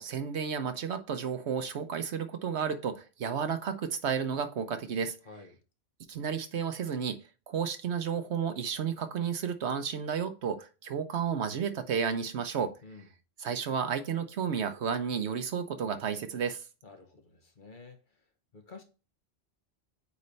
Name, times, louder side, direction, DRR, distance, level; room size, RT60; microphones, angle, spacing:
voice 1, 0.0-5.2 6.1-7.2 7.5-12.7 13.4-16.6, right 7 dB, 85° right, 1.2 m, -32 dB
voice 2, 5.2-5.6 12.8-13.1 16.8-18.0 18.5-18.8, left 3 dB, 50° left, 1.3 m, -50 dB
8.4 x 3.3 x 4.1 m
omnidirectional pair, 1.1 m